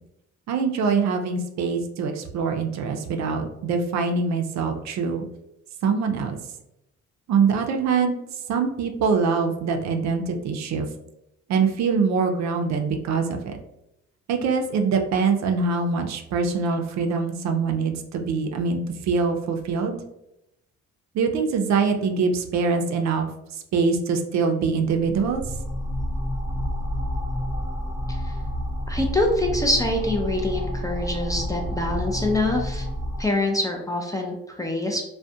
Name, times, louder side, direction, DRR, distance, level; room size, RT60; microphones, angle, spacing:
voice 1, 0.5-5.2 5.8-6.4 7.3-8.2 8.5-10.9 11.5-13.5 14.3-18.8 19.1-20.0 21.1-23.3 23.7-25.4, right 5 dB, 65° right, 4 dB, 0.4 m, -23 dB
sound 1, 24.9-33.3, equal, 15° right, 0.8 m, -29 dB
voice 2, 28.9-32.9 33.2-35.0, left 1 dB, 10° left, 1 dB, 0.4 m, -25 dB
2.3 x 2.1 x 2.6 m, 0.83 s
cardioid pair, 90°, 30 cm